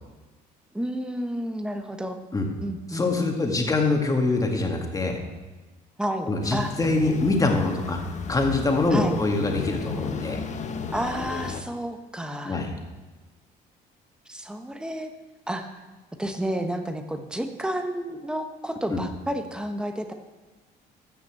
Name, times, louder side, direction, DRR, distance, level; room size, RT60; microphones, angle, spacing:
voice 1, 0.7-2.2 2.6-3.6 6.0-6.8 8.9-9.2 10.9-12.6 14.3-15.1 15.5-15.8 16.2-20.1, right 1 dB, 5° right, 6 dB, 1.2 m, -31 dB
voice 2, 2.9-5.2 6.3-8.0 8.3-10.4 12.4-12.7 18.9-19.0, left 3 dB, 20° left, 2 dB, 2.0 m, -24 dB
sound 1, 6.4-11.6, left 6 dB, 45° left, 1.1 m, -34 dB
13.5 x 6.0 x 7.7 m, 1.2 s
cardioid pair, 110°, 17 cm